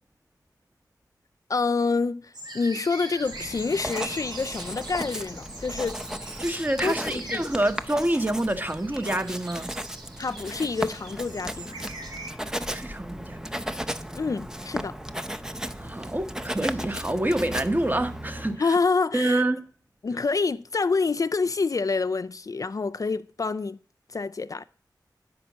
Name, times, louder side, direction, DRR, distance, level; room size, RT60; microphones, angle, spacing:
voice 1, 1.5-6.0 6.8-7.4 10.2-11.7 14.1-15.0 18.6-19.4 20.0-23.8 24.1-24.6, left 4 dB, 50° left, 0.4 m, -27 dB
sound 1, 2.3-12.3, right 2 dB, 70° right, 1.5 m, -42 dB
Writing, 3.2-18.6, equal, 10° right, 0.6 m, -36 dB
voice 2, 6.4-9.7 12.7-13.4 15.8-18.8 19.1-19.6, right 1 dB, 25° right, 1.0 m, -27 dB
9.2 x 5.1 x 7.2 m
cardioid pair, 45°, 7 cm